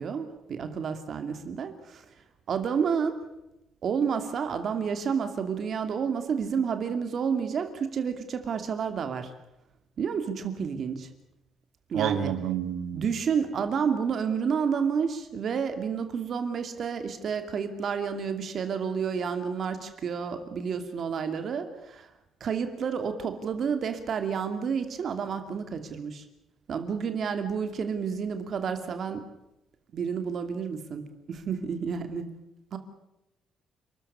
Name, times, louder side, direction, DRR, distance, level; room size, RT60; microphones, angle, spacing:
voice 1, 0.0-2.0 2.5-3.2 3.8-9.3 10.0-11.1 11.9-12.3 12.9-22.1 22.4-26.2 26.7-29.2 29.9-32.3 32.7-32.8, right 6 dB, 40° right, 8 dB, 2.5 m, -30 dB
voice 2, 11.9-13.0, right 10 dB, 90° right, 10 dB, 2.6 m, -29 dB
30.0 x 14.0 x 9.7 m, 0.91 s
cardioid pair, 175°, 0 cm